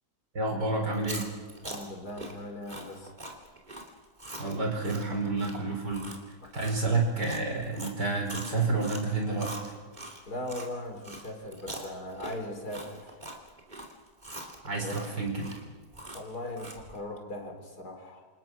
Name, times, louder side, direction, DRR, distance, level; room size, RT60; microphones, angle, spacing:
voice 1, 0.3-1.3 4.4-6.1 6.5-9.5 14.6-15.5, right 3 dB, 80° right, 2 dB, 5.7 m, -29 dB
Chewing mastication, 0.9-10.7 11.0-17.0, right 1 dB, 25° right, 3.0 m, -43 dB
voice 2, 1.6-3.1 6.4-6.9 10.3-13.2 14.8-14.9 16.1-18.3, left 1 dB, 65° left, 4 dB, 4.2 m, -39 dB
27.5 x 27.0 x 6.2 m, 1.4 s
omnidirectional pair, 1.8 m